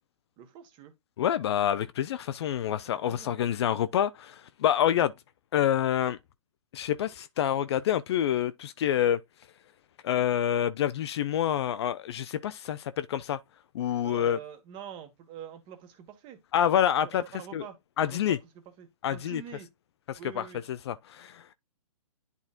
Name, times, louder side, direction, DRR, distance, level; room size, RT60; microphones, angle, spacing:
voice 1, 0.4-0.9 2.7-3.4 14.0-16.7 17.0-18.4 18.8-19.7 20.2-20.6, right 9 dB, 25° right, 1.6 m, -45 dB
voice 2, 1.2-5.1 5.5-6.2 6.7-9.2 10.0-13.4 13.7-14.4 16.5-17.2 17.5-17.6 18.0-18.4 19.0-19.4 20.1-20.4 20.9-21.4, left 10 dB, 45° left, 0.6 m, -27 dB
10.5 x 4.2 x 2.5 m
hypercardioid pair, 140°, 19 cm